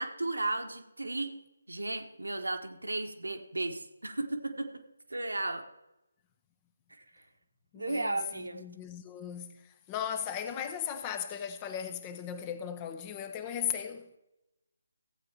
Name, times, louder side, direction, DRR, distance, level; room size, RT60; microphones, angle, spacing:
voice 1, 0.0-1.3 1.7-4.8 5.1-5.7 7.7-8.6, right 2 dB, 80° right, 1.5 m, -34 dB
voice 2, 7.7-14.2, left 9 dB, 20° left, 0.8 m, -37 dB
15.5 x 8.4 x 4.5 m
figure-of-eight pair, 150°, 0 cm